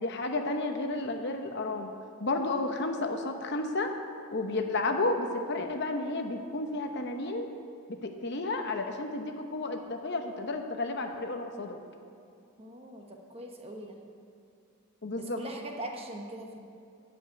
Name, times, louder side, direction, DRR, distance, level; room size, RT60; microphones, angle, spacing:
voice 1, 0.0-1.9 2.2-3.9 4.3-7.5 7.9-11.8 15.0-15.4, left 2 dB, 50° left, 5 dB, 0.9 m, -32 dB
voice 2, 12.6-14.0 15.2-16.6, right 1 dB, 25° right, 2 dB, 1.1 m, -41 dB
13.5 x 5.5 x 9.1 m, 2.5 s
head